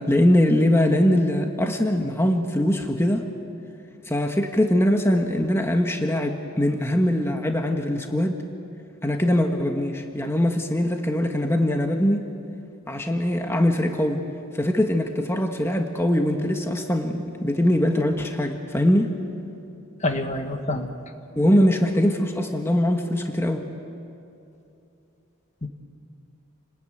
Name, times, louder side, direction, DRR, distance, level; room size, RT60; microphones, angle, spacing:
voice 1, 0.1-3.3 4.1-8.4 9.0-12.3 12.9-14.2 14.5-19.2 21.4-23.7, left 1 dB, 10° left, 3 dB, 1.4 m, -22 dB
voice 2, 20.0-20.9 25.6-25.7, left 2 dB, 35° left, 6 dB, 1.5 m, -27 dB
29.5 x 20.0 x 9.2 m, 2.7 s
head